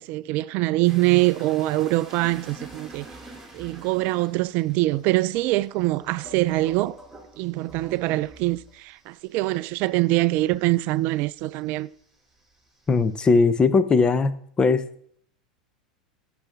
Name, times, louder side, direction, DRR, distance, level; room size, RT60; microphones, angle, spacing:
voice 1, 0.0-3.1 3.5-7.0 7.4-11.9, right 19 dB, 50° right, 0.3 m, -24 dB
sound 1, 0.8-11.8 12.1-13.3, right 2 dB, 5° right, 3.0 m, -46 dB
voice 2, 12.9-14.3 14.6-14.8, left 4 dB, 20° left, 0.8 m, -19 dB
15.0 x 7.0 x 3.6 m
figure-of-eight pair, 85°, 4 cm